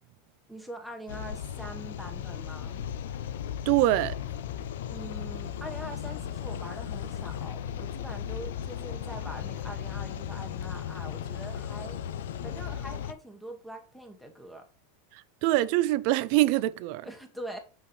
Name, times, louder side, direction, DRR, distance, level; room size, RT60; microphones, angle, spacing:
voice 1, 0.5-2.8 4.8-12.0 12.4-14.7 17.0-17.6, right 1 dB, ahead, 1.2 m, -43 dB
sound 1, 1.1-13.1, left 9 dB, 80° left, 0.5 m, -36 dB
voice 2, 3.7-4.1 15.4-17.1, right 16 dB, 60° right, 0.3 m, -24 dB
5.5 x 5.5 x 3.2 m
hypercardioid pair, 115°, 0 cm